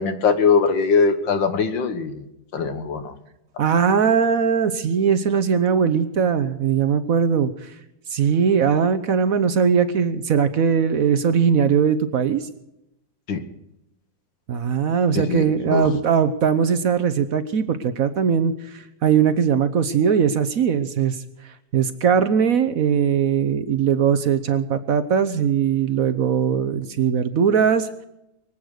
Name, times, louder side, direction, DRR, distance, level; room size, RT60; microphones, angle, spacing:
voice 1, 0.0-2.2 2.5-3.1 13.3-13.4 15.2-15.9, left 5 dB, 85° left, 9 dB, 2.1 m, -21 dB
voice 2, 3.6-7.7 8.1-12.5 14.5-21.2 21.7-27.9, right 7 dB, 60° right, 11 dB, 1.1 m, -20 dB
23.5 x 8.7 x 6.5 m, 0.87 s
omnidirectional pair, 2.0 m